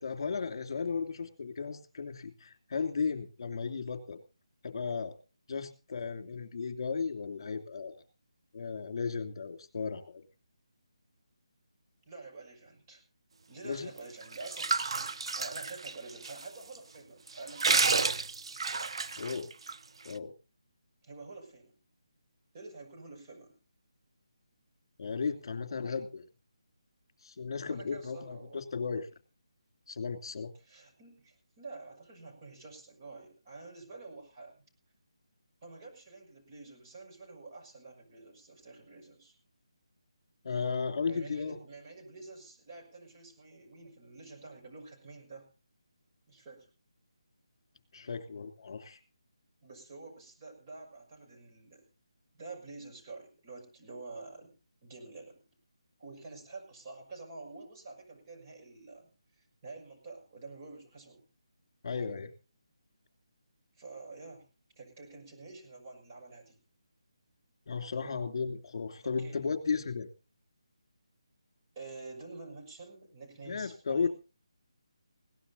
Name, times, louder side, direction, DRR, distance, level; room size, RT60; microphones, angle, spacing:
voice 1, 0.0-4.2 4.6-5.2 5.5-8.0 8.5-10.2 13.6-13.9 19.2-19.5 20.0-20.3 25.0-26.2 27.2-29.1 29.9-30.5 40.4-41.6 47.9-49.0 61.8-62.3 67.7-70.1 73.4-74.1, left 5 dB, 50° left, 8 dB, 2.9 m, -35 dB
voice 2, 12.1-13.0 13.5-15.1 15.3-17.9 21.0-21.8 22.5-23.6 27.7-28.6 30.6-34.6 35.6-39.3 41.1-45.5 46.3-46.7 49.6-51.8 52.3-54.5 54.8-55.4 56.0-61.2 63.8-64.5 64.8-66.6 69.0-69.5 71.7-74.1, right 3 dB, 30° right, 0 dB, 6.3 m, -48 dB
sound 1, 14.0-16.4 16.7-16.8 17.3-19.7, right 4 dB, 60° right, 0.8 m, -30 dB
20.5 x 17.5 x 2.8 m, 0.33 s
figure-of-eight pair, 160°, 3 cm